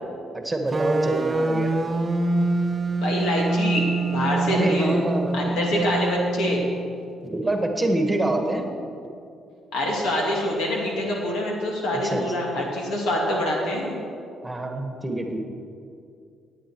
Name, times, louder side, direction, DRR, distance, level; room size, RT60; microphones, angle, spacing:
voice 1, 0.3-1.7 4.5-5.6 7.3-8.7 11.9-12.2 14.4-15.4, right 2 dB, 10° right, 3 dB, 1.6 m, -26 dB
sound 1, 0.7-6.8, right 2 dB, 30° right, 0.8 m, -25 dB
voice 2, 3.0-4.9 5.3-6.6 9.7-14.0, left 1 dB, 90° left, -2 dB, 3.0 m, -25 dB
17.0 x 9.1 x 4.7 m, 2.5 s
cardioid pair, 90°, 0 cm